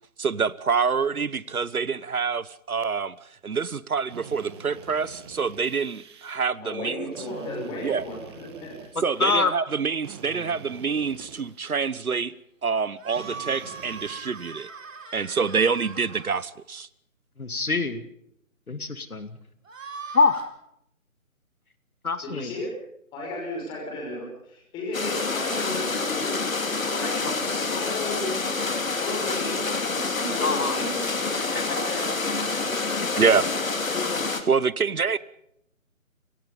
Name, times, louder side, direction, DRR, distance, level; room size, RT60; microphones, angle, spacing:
voice 1, 0.2-3.1 3.4-7.1 7.8-8.0 9.0-12.3 12.6-14.7 15.1-16.9 33.2-33.5 34.5-35.2, right 5 dB, 85° right, 1.2 m, -26 dB
Drill, 4.1-6.4 7.1-9.3 10.0-11.9 13.1-14.5, right 6 dB, 20° right, 2.1 m, -45 dB
voice 2, 6.6-8.7 22.2-22.7 23.1-26.4 26.7-28.4 29.0-33.2 33.6-33.7, left 1 dB, 10° left, 5.7 m, -35 dB
voice 3, 9.2-9.5 17.4-18.0 18.7-19.4 20.1-20.5 22.0-22.5 27.2-27.3 30.4-30.8 33.0-33.1 33.9-34.3, left 4 dB, 85° left, 2.5 m, -25 dB
sound 1, 13.0-16.4 19.7-20.5, right 5 dB, 65° right, 4.5 m, -40 dB
sound 2, 24.9-34.4, left 4 dB, 65° left, 3.3 m, -27 dB
29.5 x 18.5 x 5.4 m
figure-of-eight pair, 160°, 42 cm